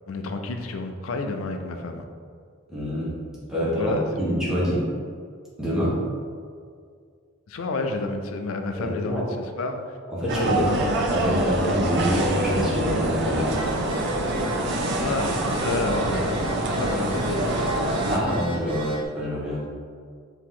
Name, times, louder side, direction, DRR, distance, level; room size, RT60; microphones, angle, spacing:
voice 1, 0.1-2.0 3.6-4.0 7.5-10.8 15.0-17.6, left 3 dB, 80° left, 5 dB, 0.4 m, -30 dB
voice 2, 2.7-3.2 3.5-4.8 5.6-5.9 8.7-9.2 10.1-10.7 11.1-13.5 18.1-19.6, equal, 5° right, -10 dB, 1.3 m, -26 dB
sound 1, 10.3-18.2, right 1 dB, 55° right, 0.5 m, -25 dB
Telephone, 13.4-19.0, right 1 dB, 25° right, 0.9 m, -39 dB
4.7 x 2.9 x 3.7 m, 2.1 s
head